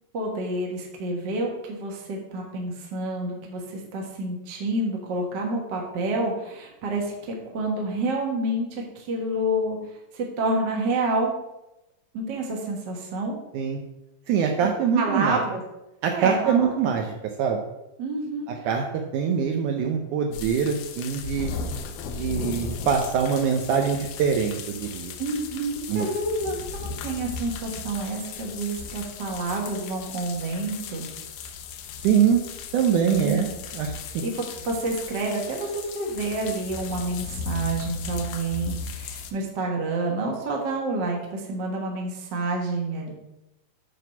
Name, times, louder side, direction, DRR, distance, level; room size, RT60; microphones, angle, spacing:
voice 1, 0.1-9.8 10.1-11.3 12.1-13.4 14.9-15.6 16.1-16.7 18.0-18.5 25.2-31.1 33.2-33.5 34.2-43.1, right 2 dB, 50° right, 0 dB, 1.4 m, -28 dB
voice 2, 14.3-15.4 16.0-17.6 18.7-18.8 19.1-21.5 22.1-25.1 25.9-26.1 32.0-32.4 32.7-33.5 33.7-33.9, right 7 dB, 75° right, 2 dB, 1.9 m, -23 dB
sound 1, 20.3-39.3, left 5 dB, 75° left, 1.9 m, -36 dB
9.3 x 4.0 x 5.8 m, 0.93 s
omnidirectional pair, 4.0 m